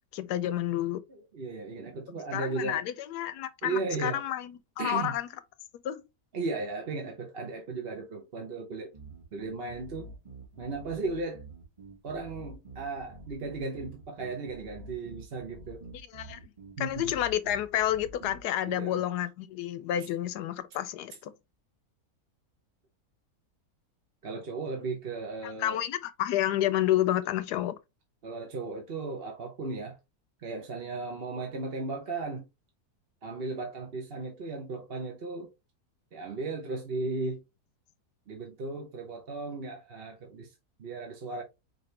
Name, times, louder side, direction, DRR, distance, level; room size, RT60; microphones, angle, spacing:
voice 1, 0.1-1.0 2.3-5.3 5.8-6.0 16.1-16.5 16.8-21.3 25.4-27.7, left 12 dB, 85° left, 1.2 m, -30 dB
voice 2, 1.1-2.8 3.6-4.2 4.8-5.2 6.3-8.9 9.3-10.1 10.6-11.4 12.0-15.8 16.8-17.1 18.6-19.0 24.2-25.8 28.2-30.0 30.4-32.4 33.2-35.5 36.1-37.4 38.3-41.4, right 3 dB, 45° right, 1.0 m, -36 dB
sound 1, 8.9-18.4, right 2 dB, 20° right, 1.6 m, -48 dB
5.1 x 3.1 x 3.2 m
omnidirectional pair, 1.7 m